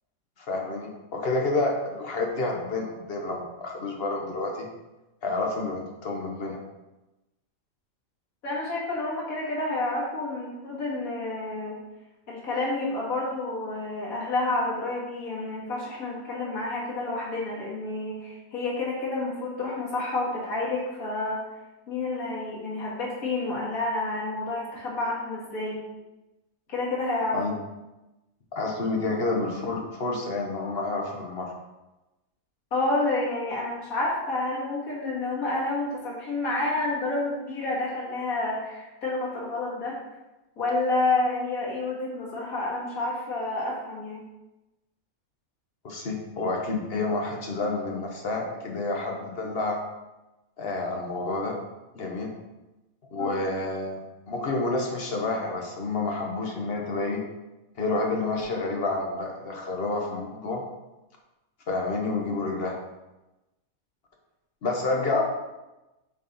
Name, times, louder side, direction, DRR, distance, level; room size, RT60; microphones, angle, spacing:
voice 1, 0.4-4.7 5.2-6.6 27.3-27.5 28.5-31.5 45.8-49.8 50.6-51.6 51.9-52.3 53.1-54.0 54.3-57.2 57.8-60.6 61.7-62.8 64.6-65.2, left 2 dB, 50° left, 0 dB, 1.1 m, -29 dB
voice 2, 8.4-11.8 12.3-21.4 21.9-25.9 26.7-27.4 32.7-40.0 40.6-44.3 53.2-53.4 64.9-65.2, left 2 dB, 85° left, -5 dB, 2.1 m, -29 dB
6.6 x 4.2 x 4.0 m, 1.0 s
omnidirectional pair, 1.5 m